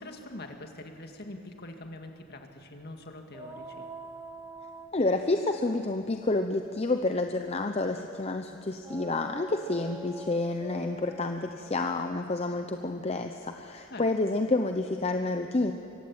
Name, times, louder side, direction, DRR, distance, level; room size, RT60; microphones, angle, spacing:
voice 1, 0.0-3.9 13.9-14.0, left 1 dB, 50° left, 4 dB, 2.0 m, -44 dB
sound 1, 3.3-8.0 8.8-13.5, right 2 dB, 15° right, 1.0 m, -47 dB
voice 2, 4.9-15.7, left 2 dB, 30° left, 6 dB, 0.7 m, -29 dB
24.0 x 15.5 x 8.9 m, 2.7 s
head